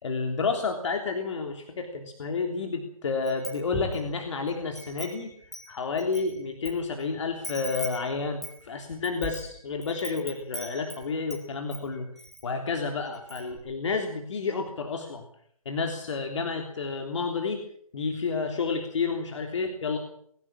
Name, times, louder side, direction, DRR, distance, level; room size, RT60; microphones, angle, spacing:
voice 1, 0.0-5.3 5.7-12.1 12.4-15.2 15.7-17.6 17.9-20.0, left 4 dB, 55° left, 4 dB, 3.3 m, -30 dB
Wind chime, 3.3-4.1 4.5-6.7 7.0-7.1 7.4-11.4 11.7-12.4 12.8-12.9 13.1-13.6, right 1 dB, ahead, 5.2 m, -40 dB
21.5 x 18.0 x 7.5 m, 0.64 s
figure-of-eight pair, 150°, 19 cm